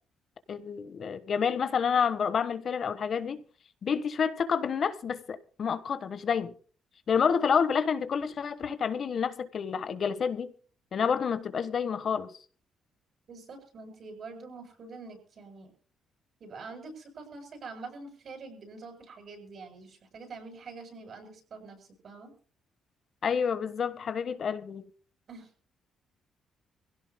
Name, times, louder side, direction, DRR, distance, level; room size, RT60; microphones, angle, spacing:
voice 1, 0.5-3.4 3.8-6.5 7.1-10.5 10.9-12.3 23.2-24.9, left 6 dB, 55° left, 1.3 m, -29 dB
voice 2, 13.3-15.7 16.4-22.3 25.3-25.5, right 4 dB, 55° right, 8.0 m, -45 dB
24.5 x 16.5 x 2.2 m
cardioid pair, 90°, 0 cm